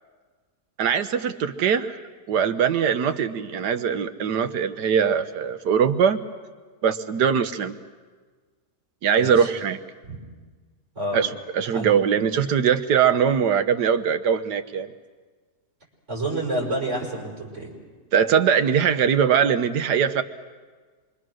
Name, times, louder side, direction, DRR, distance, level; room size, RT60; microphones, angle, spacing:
voice 1, 0.8-2.0 2.3-6.2 6.8-7.8 9.0-9.8 11.1-14.9 18.1-20.2, right 7 dB, 80° right, 10 dB, 1.5 m, -21 dB
voice 2, 16.1-17.7, right 1 dB, 45° right, -2 dB, 5.9 m, -28 dB
27.0 x 24.0 x 6.3 m, 1.5 s
omnidirectional pair, 1.8 m